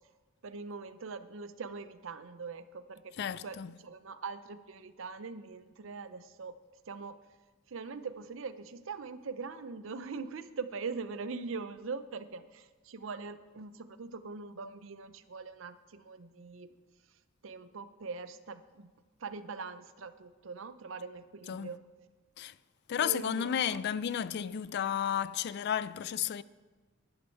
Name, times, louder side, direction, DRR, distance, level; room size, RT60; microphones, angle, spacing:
voice 1, 0.4-6.6 6.9-7.2 7.7-16.7 17.4-18.9 19.2-21.8 23.0-23.8, right 4 dB, 65° right, 0.6 m, -42 dB
voice 2, 3.2-3.7 21.5-21.7 22.4-22.5 22.9-26.4, left 9 dB, 55° left, 0.3 m, -32 dB
12.5 x 11.0 x 4.5 m
head